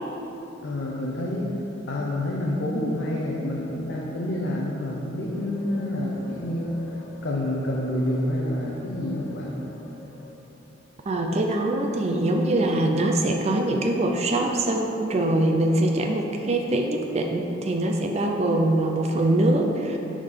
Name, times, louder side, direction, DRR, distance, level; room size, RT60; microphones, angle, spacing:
voice 1, 0.6-1.5 1.9-7.0 7.2-9.5 19.1-19.2, left 1 dB, 65° left, -4 dB, 0.7 m, -28 dB
sound 1, 5.3-10.3, left 2 dB, 10° left, 1.1 m, -45 dB
voice 2, 11.1-20.0, right 1 dB, 35° right, 2 dB, 0.4 m, -23 dB
6.3 x 3.7 x 5.0 m, 2.9 s
head